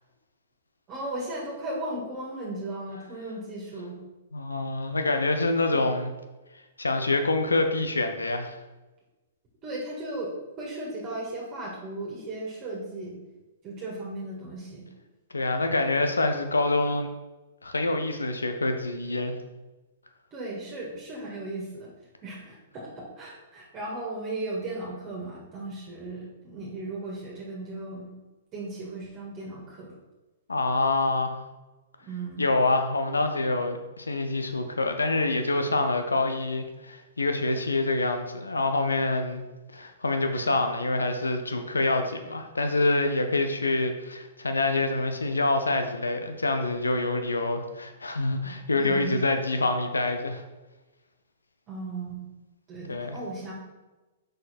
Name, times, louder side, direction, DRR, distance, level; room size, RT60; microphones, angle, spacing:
voice 1, 0.9-4.0 9.6-13.2 13.6-14.9 20.3-21.9 22.2-28.1 28.5-29.9 32.1-32.5 48.8-49.2 51.7-52.3 52.7-53.5, right 2 dB, 30° right, -4 dB, 1.9 m, -36 dB
voice 2, 4.3-6.1 6.8-8.6 15.3-17.1 17.6-19.3 30.5-31.4 32.4-39.4 39.7-50.4 52.9-53.2, left 2 dB, 80° left, 6 dB, 0.8 m, -26 dB
6.4 x 5.3 x 4.4 m, 1.1 s
figure-of-eight pair, 110°, 0 cm